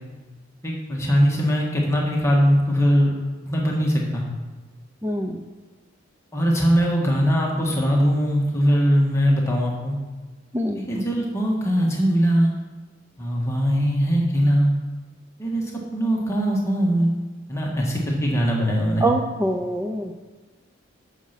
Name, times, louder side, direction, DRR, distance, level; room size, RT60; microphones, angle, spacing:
voice 1, 0.6-3.1 3.4-4.2 6.3-10.0 10.7-12.5 13.2-14.7 15.4-17.1 17.5-19.1, equal, 15° left, -2 dB, 1.5 m, -21 dB
voice 2, 5.0-5.4 10.5-10.8 19.0-20.1, right 1 dB, 10° right, 3 dB, 0.5 m, -24 dB
8.6 x 7.1 x 5.8 m, 1.3 s
head